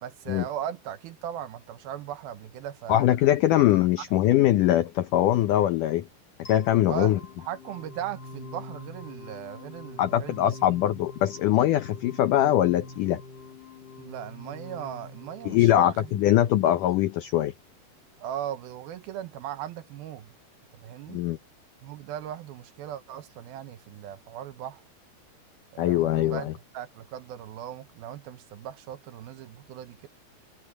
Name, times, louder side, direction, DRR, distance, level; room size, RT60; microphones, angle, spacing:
voice 1, 0.0-3.1 3.6-3.7 6.9-7.1 7.4-10.8 14.0-16.2 16.6-16.7 18.2-20.3 20.7-21.2 21.8-24.8 25.7-30.1, right 10 dB, 70° right, 2.6 m, -38 dB
voice 2, 2.9-6.1 6.5-7.2 10.0-13.2 15.4-17.5 21.1-21.4 25.8-26.5, left 13 dB, 90° left, 1.8 m, -22 dB
sound 1, 6.4-17.4, left 2 dB, 30° left, 3.2 m, -45 dB
omnidirectional pair, 4.8 m